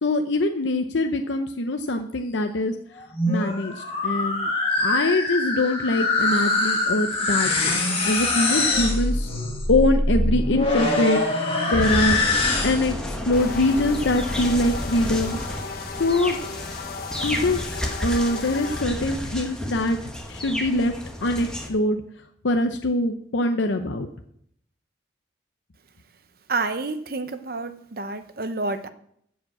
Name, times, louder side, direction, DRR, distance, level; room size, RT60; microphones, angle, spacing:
voice 1, 0.0-2.7 3.3-3.7 4.0-4.5 4.8-9.3 9.7-12.2 12.6-15.4 16.0-16.4 17.2-17.6 18.0-20.0 20.3-20.9 21.2-22.0 22.4-24.1, left 2 dB, 75° left, 0.7 m, -23 dB
sound 1, 3.0-13.0, left 2 dB, 30° left, 1.5 m, -23 dB
sound 2, 11.8-21.7, left 1 dB, 5° left, 1.3 m, -31 dB
sound 3, 13.3-18.8, left 5 dB, 50° left, 1.1 m, -36 dB
voice 2, 26.5-28.9, right 3 dB, 50° right, 0.7 m, -29 dB
13.5 x 5.1 x 7.7 m
head